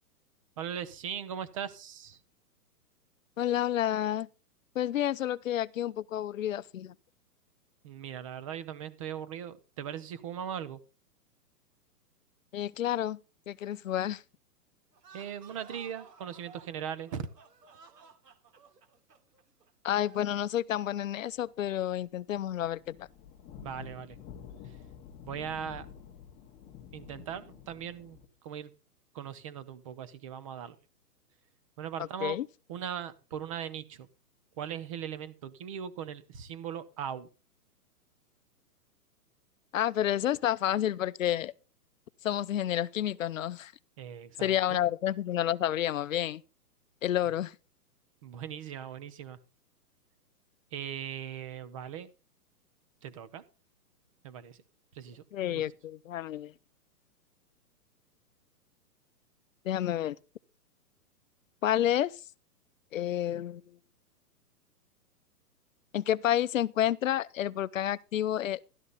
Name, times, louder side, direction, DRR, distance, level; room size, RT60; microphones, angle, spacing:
voice 1, 0.6-2.2 7.8-10.8 15.1-17.3 23.6-24.2 25.2-25.9 26.9-28.2 28.4-28.7 29.1-30.8 31.8-32.4 32.7-34.1 34.6-37.3 44.0-44.8 48.2-49.4 50.7-52.1 53.0-53.4 54.2-54.6 54.9-55.6, right 8 dB, 20° right, 0.7 m, -39 dB
voice 2, 3.4-4.3 4.8-6.9 12.5-13.2 13.5-14.2 19.8-23.1 32.2-32.5 39.7-41.5 42.2-43.7 44.4-46.4 47.0-47.5 55.3-56.5 59.6-60.2 61.6-62.1 62.9-63.6 65.9-68.6, left 11 dB, 55° left, 0.7 m, -30 dB
sound 1, 14.9-20.4, right 6 dB, 90° right, 3.0 m, -55 dB
sound 2, 22.0-28.3, left 7 dB, 15° left, 1.2 m, -49 dB
13.0 x 12.5 x 4.0 m
hypercardioid pair, 165°, 47 cm